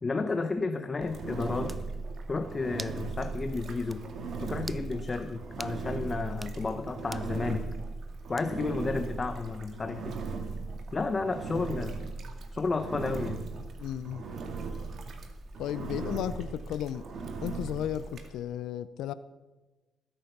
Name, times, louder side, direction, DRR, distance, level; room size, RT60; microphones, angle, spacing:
voice 1, 0.0-1.8 2.3-4.0 4.4-7.7 8.3-10.2 10.9-12.1 12.5-13.5, left 3 dB, 30° left, 9 dB, 0.8 m, -32 dB
Engine, 1.0-18.3, right 4 dB, 60° right, 2.1 m, -38 dB
sound 1, 1.7-1.9 2.8-3.0 3.4-3.5 3.9-4.0 4.6-4.9 5.6-5.8 6.3-6.6 7.1-7.3 8.4-8.7, right 2 dB, 15° right, 0.5 m, -43 dB
voice 2, 13.8-14.3 15.6-17.1 17.4-19.1, left 10 dB, 85° left, 15 dB, 0.5 m, -34 dB
20.5 x 9.0 x 5.9 m, 1.2 s
cardioid pair, 90°, 0 cm